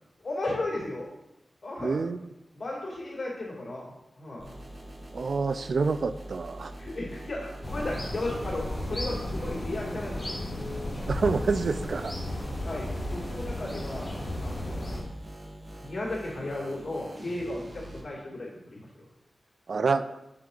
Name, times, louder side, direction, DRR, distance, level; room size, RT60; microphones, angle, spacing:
voice 1, 0.2-1.1 1.6-2.0 2.5-4.5 6.7-10.4 12.6-14.1 14.4-14.9 15.8-18.9, left 2 dB, 50° left, -4 dB, 2.4 m, -35 dB
voice 2, 1.8-2.2 5.1-6.7 11.1-12.1 19.7-20.2, right 4 dB, 65° right, 12 dB, 0.3 m, -27 dB
sound 1, 4.4-18.0, right 1 dB, 40° right, 1.3 m, -45 dB
sound 2, 7.6-15.0, left 1 dB, 25° left, 1.6 m, -34 dB
7.5 x 4.4 x 3.9 m, 0.91 s
wide cardioid pair, 80°, 0 cm